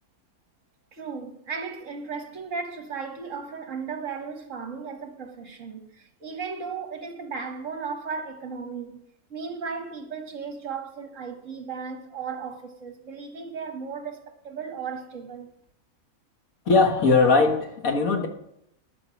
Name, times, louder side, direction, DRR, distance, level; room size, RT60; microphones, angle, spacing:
voice 1, 0.9-9.0 9.3-15.5, right 5 dB, 60° right, 1.7 m, -35 dB
voice 2, 16.7-18.3, left 4 dB, 70° left, 1.9 m, -20 dB
11.0 x 8.8 x 6.3 m
omnidirectional pair, 1.5 m